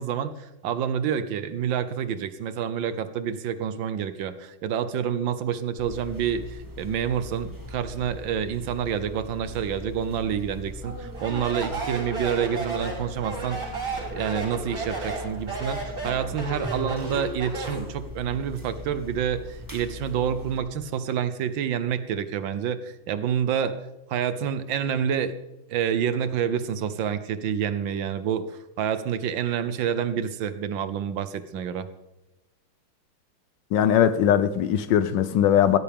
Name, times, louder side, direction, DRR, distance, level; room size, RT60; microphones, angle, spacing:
voice 1, 0.0-13.8 14.1-23.8 24.1-25.4 25.7-31.9, right 8 dB, 70° right, 12 dB, 1.5 m, -28 dB
sound 1, 5.8-20.6, left 1 dB, 10° right, 1.7 m, -40 dB
Speech, 11.1-17.9, right 3 dB, 55° right, 6.9 m, -33 dB
voice 2, 33.7-35.8, left 9 dB, 70° left, 13 dB, 1.2 m, -20 dB
16.0 x 13.5 x 3.5 m, 0.96 s
omnidirectional pair, 2.2 m